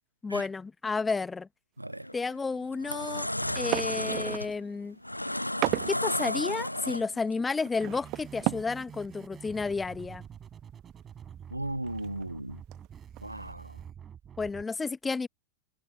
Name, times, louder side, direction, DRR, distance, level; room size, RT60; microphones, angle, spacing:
voice 1, 0.2-1.5 2.1-3.3 3.5-5.0 5.9-10.2 14.4-15.3, left 4 dB, 15° left, 0.7 m, -31 dB
sound 1, 1.9-2.2 2.6-7.3, left 1 dB, 85° left, 0.6 m, -33 dB
sound 2, 3.4-4.6 5.2-6.0 6.4-6.5 6.7-8.9 9.2-9.3 9.6-9.7 10.0-10.1 11.7-12.2 12.7-12.9 13.2-13.5, right 24 dB, 40° right, 1.2 m, -34 dB
sound 3, 7.8-14.6, right 8 dB, 25° right, 7.1 m, -47 dB
voice 2, 11.5-12.6 13.2-13.7, right 1 dB, 85° right, 0.5 m, -36 dB
figure-of-eight pair, 90°, 0 cm